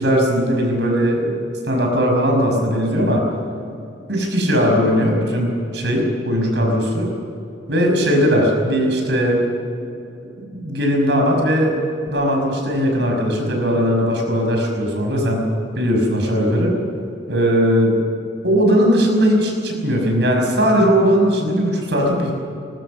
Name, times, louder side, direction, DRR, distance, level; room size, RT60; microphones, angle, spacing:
voice 1, 0.0-3.2 4.1-7.1 7.7-9.4 10.5-11.7 12.1-15.4 15.8-16.7 17.3-17.9 18.4-22.3, equal, 70° right, 1 dB, 5.7 m, -18 dB
20.5 x 19.0 x 7.4 m, 2.7 s
head